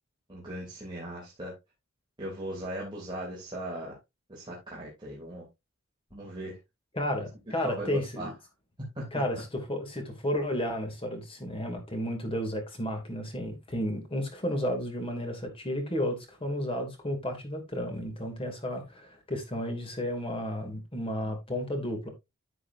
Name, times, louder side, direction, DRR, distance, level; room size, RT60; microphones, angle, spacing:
voice 1, 0.3-1.5 2.2-4.0 4.3-5.4 6.1-6.6 7.6-8.3 8.9-9.0 21.2-21.3, right 1 dB, 20° right, 3.1 m, -38 dB
voice 2, 6.9-8.3 9.1-22.1, equal, 25° left, 2.7 m, -32 dB
10.5 x 7.4 x 2.7 m
head